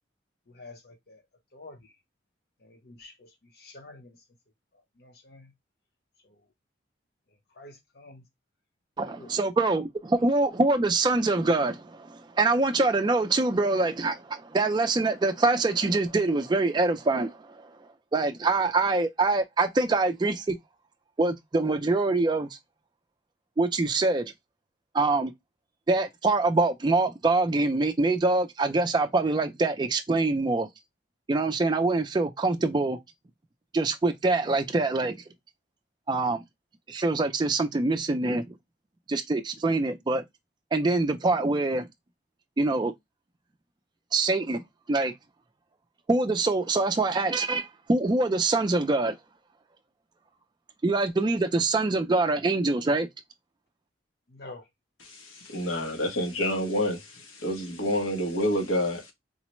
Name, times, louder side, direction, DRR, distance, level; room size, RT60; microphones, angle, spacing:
voice 1, 0.5-1.2 1.5-1.9 2.6-4.2 5.0-5.5 6.2-6.4 7.6-8.2 9.0-9.3 54.3-54.7, left 2 dB, 55° left, 0.7 m, -48 dB
voice 2, 9.0-17.6 18.1-20.5 21.2-22.5 23.6-24.3 24.9-25.3 25.9-30.7 31.3-33.0 33.7-35.2 36.1-36.4 36.9-38.6 39.1-40.2 40.7-41.9 42.6-42.9 44.1-44.6 44.9-45.1 46.1-49.2 50.8-53.1, right 3 dB, 25° right, 0.3 m, -24 dB
voice 3, 55.0-59.1, left 1 dB, 90° left, 1.0 m, -28 dB
3.9 x 2.1 x 2.9 m
head